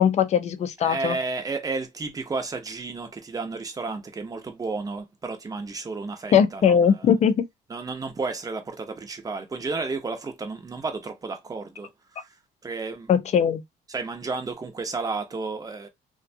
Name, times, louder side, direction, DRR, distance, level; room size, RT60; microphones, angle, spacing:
voice 1, 0.0-1.2 6.3-7.4 13.1-13.6, left 8 dB, 40° left, 0.5 m, -20 dB
voice 2, 0.8-7.1 7.7-12.3 12.6-13.1 13.9-15.9, right 3 dB, 20° right, 0.7 m, -32 dB
2.5 x 2.2 x 2.5 m
cardioid pair, 110°, 17 cm